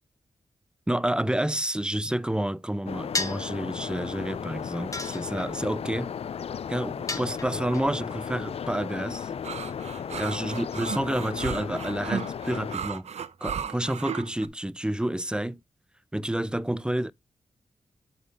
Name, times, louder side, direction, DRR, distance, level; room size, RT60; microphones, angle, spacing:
voice 1, 0.9-6.1 6.7-9.3 10.2-13.1 13.4-15.6 16.1-17.1, right 1 dB, 10° right, 0.4 m, -29 dB
sound 1, 2.9-12.8, left 7 dB, 60° left, 0.4 m, -35 dB
sound 2, 3.1-3.5 4.9-5.6 7.1-7.8, left 3 dB, 30° left, 1.6 m, -32 dB
sound 3, 9.4-14.5, right 7 dB, 75° right, 0.6 m, -35 dB
8.0 x 4.1 x 5.2 m
cardioid pair, 50°, 11 cm